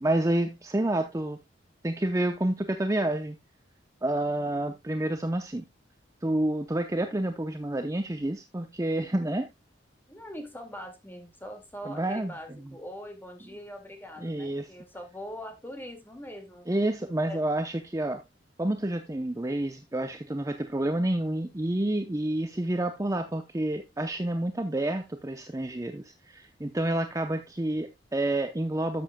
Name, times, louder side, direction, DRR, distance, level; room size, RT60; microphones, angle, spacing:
voice 1, 0.0-1.4 1.8-3.4 4.0-5.6 6.2-9.5 11.8-12.3 14.2-14.7 16.7-18.2 18.6-29.0, right 1 dB, 15° right, 0.6 m, -29 dB
voice 2, 10.1-16.7 17.3-17.4, equal, 10° left, 2.0 m, -42 dB
13.0 x 7.1 x 2.2 m
head